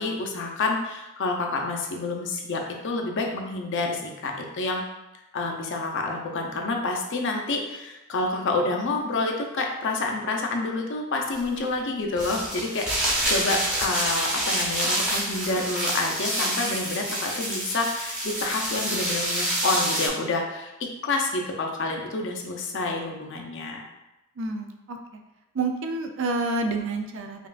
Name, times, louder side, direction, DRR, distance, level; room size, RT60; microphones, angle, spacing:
voice 1, 0.0-4.9 5.3-23.9, left 3 dB, 55° left, 2 dB, 0.5 m, -28 dB
sound 1, 11.3-11.4 12.2-20.1, right 1 dB, 5° right, 0.7 m, -27 dB
voice 2, 24.4-25.2 25.5-27.5, right 3 dB, 60° right, 4 dB, 0.4 m, -29 dB
5.2 x 2.4 x 2.4 m, 1.0 s
head